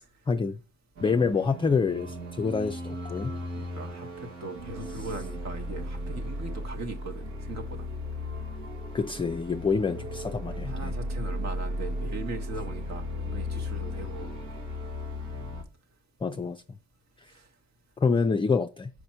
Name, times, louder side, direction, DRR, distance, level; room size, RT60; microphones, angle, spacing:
voice 1, 0.3-0.6 1.0-3.3 8.9-10.9 16.2-16.6 18.0-18.9, left 5 dB, 15° left, 0.4 m, -27 dB
sound 1, 1.0-15.6, left 1 dB, 90° right, 1.4 m, -36 dB
voice 2, 3.6-7.9 10.6-14.4 16.3-16.5 17.3-17.4, right 2 dB, 60° right, 1.3 m, -39 dB
5.4 x 5.0 x 4.4 m
cardioid pair, 90°, 30 cm